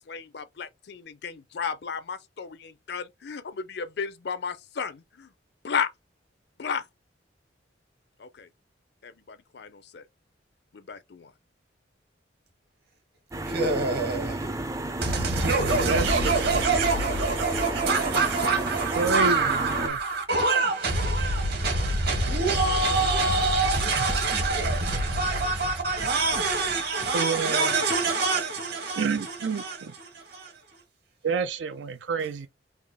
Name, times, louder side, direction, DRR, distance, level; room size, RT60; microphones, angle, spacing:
voice 1, 0.0-5.3 5.6-5.9 6.6-6.8 8.2-8.5 9.0-10.0 10.7-11.3, left 6 dB, 60° left, 0.5 m, -34 dB
sound 1, 13.3-19.9, right 1 dB, 15° right, 0.4 m, -32 dB
voice 2, 13.4-14.5 15.0-30.8, right 3 dB, 60° right, 1.6 m, -25 dB
voice 3, 15.4-16.6 19.0-20.0 27.1-27.7 28.9-29.9 31.2-32.5, right 5 dB, 75° right, 0.4 m, -29 dB
3.5 x 2.4 x 3.5 m
head